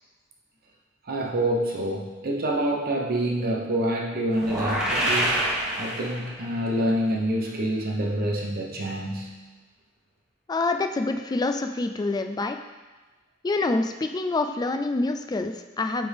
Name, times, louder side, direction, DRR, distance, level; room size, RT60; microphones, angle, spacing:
voice 1, 1.0-5.5 5.8-9.4, right 1 dB, 50° right, 0 dB, 0.9 m, -27 dB
sound 1, 4.4-6.6, right 1 dB, 5° right, 1.1 m, -26 dB
voice 2, 10.5-12.6 13.4-16.1, left 3 dB, 20° left, 7 dB, 0.3 m, -26 dB
8.4 x 3.4 x 3.5 m, 1.2 s
head